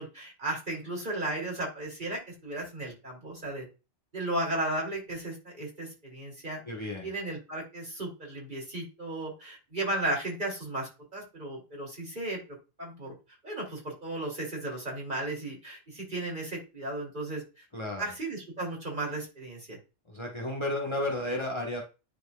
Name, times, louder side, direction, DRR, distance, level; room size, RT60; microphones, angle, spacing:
voice 1, 0.0-3.6 4.1-6.6 7.0-13.1 13.4-17.6 18.0-19.8, right 2 dB, 40° right, -2 dB, 3.1 m, -35 dB
voice 2, 6.6-7.1 17.7-18.1 20.1-21.8, left 1 dB, 25° left, 1 dB, 1.3 m, -32 dB
10.5 x 4.6 x 2.4 m, 0.29 s
omnidirectional pair, 1.2 m